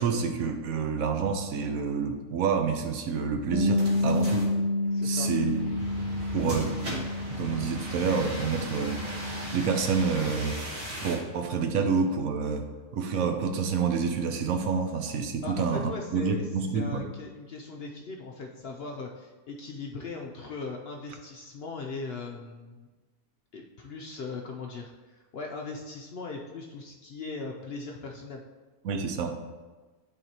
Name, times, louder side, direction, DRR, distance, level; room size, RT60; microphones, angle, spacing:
voice 1, 0.0-4.5 5.0-5.7 6.3-6.7 7.4-10.6 11.0-12.7 12.9-17.1 28.8-29.4, right 5 dB, 75° right, 5 dB, 1.1 m, -28 dB
Bass guitar, 3.5-9.8, left 2 dB, 85° left, 1.1 m, -29 dB
sound 1, 3.8-11.2, equal, 50° right, 1.7 m, -38 dB
voice 2, 4.9-5.3 15.4-16.5 16.7-22.9 23.5-28.4, left 3 dB, 60° left, 0 dB, 0.7 m, -39 dB
11.0 x 3.9 x 2.9 m, 1.3 s
omnidirectional pair, 1.5 m